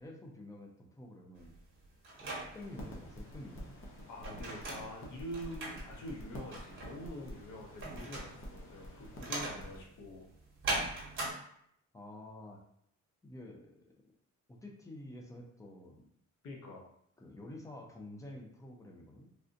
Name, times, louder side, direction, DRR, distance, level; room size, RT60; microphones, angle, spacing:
voice 1, 0.0-1.5 2.2-3.8 11.9-12.6 13.2-14.1 14.5-16.1 17.2-19.3, left 1 dB, 10° left, 0 dB, 0.4 m, -49 dB
sound 1, 1.4-11.3, right 2 dB, 40° right, 1.0 m, -41 dB
sound 2, 2.5-9.8, equal, 40° left, 0.7 m, -48 dB
voice 2, 4.1-10.3 16.4-16.8, equal, 80° left, 0 dB, 0.8 m, -45 dB
3.3 x 2.6 x 2.5 m, 0.71 s
wide cardioid pair, 150°, 31 cm